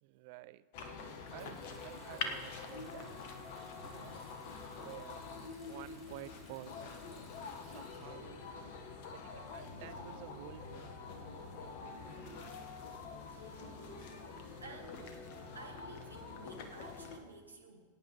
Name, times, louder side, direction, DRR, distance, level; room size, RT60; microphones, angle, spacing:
voice 1, 0.0-0.7 1.3-3.2 3.8-4.2 4.8-5.3 5.7-6.9 7.6-8.5 9.1-10.9, right 16 dB, 50° right, 15 dB, 0.4 m, -51 dB
sound 1, 0.7-17.2, left 4 dB, 50° left, 1.1 m, -46 dB
Water tap faucet, 1.3-9.0 9.3-10.4, equal, 15° left, 3.1 m, -63 dB
voice 2, 3.5-4.5 12.3-12.8 13.3-13.6 14.6-15.1 15.5-17.8, right 2 dB, 80° right, 3 dB, 1.5 m, -54 dB
sound 2, 10.9-16.2, right 2 dB, ahead, 3.0 m, -66 dB
20.5 x 9.5 x 3.0 m, 1.5 s
figure-of-eight pair, 90°, 0 cm